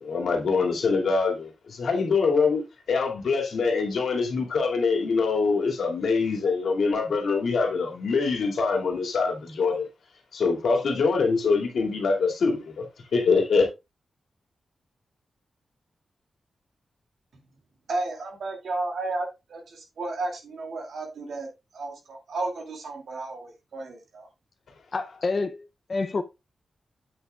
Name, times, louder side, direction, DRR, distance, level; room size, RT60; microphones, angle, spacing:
voice 1, 0.0-2.6 2.9-9.9 10.3-12.8 13.1-13.7, left 4 dB, 75° left, 2.3 m, -24 dB
voice 2, 17.9-21.5 21.7-24.3, right 2 dB, 70° right, 2.4 m, -33 dB
voice 3, 24.9-26.2, left 3 dB, 35° left, 0.5 m, -28 dB
8.5 x 8.0 x 2.3 m
wide cardioid pair, 175°, 0 cm